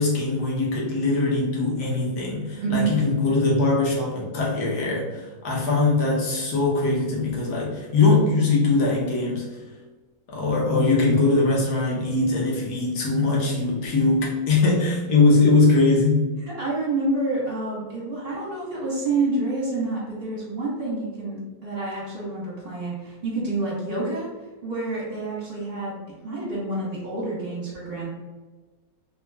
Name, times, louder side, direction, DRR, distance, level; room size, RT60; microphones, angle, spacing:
voice 1, 0.0-9.5 10.3-16.2, left 3 dB, 85° left, -3 dB, 1.4 m, -21 dB
voice 2, 2.6-3.0 16.5-28.1, right 2 dB, 45° right, -6 dB, 1.2 m, -28 dB
3.3 x 2.3 x 3.3 m, 1.3 s
omnidirectional pair, 1.6 m